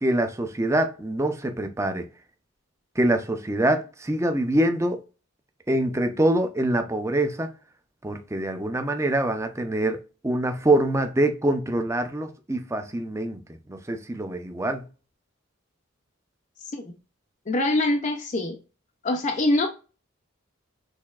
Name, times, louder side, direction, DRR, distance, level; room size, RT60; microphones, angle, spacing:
voice 1, 0.0-2.0 3.0-5.0 5.7-7.5 8.0-10.0 10.2-13.4 13.7-14.8, right 1 dB, 15° right, 0.6 m, -24 dB
voice 2, 17.5-18.6 19.0-19.7, left 2 dB, 35° left, 0.6 m, -23 dB
6.5 x 3.3 x 2.4 m
head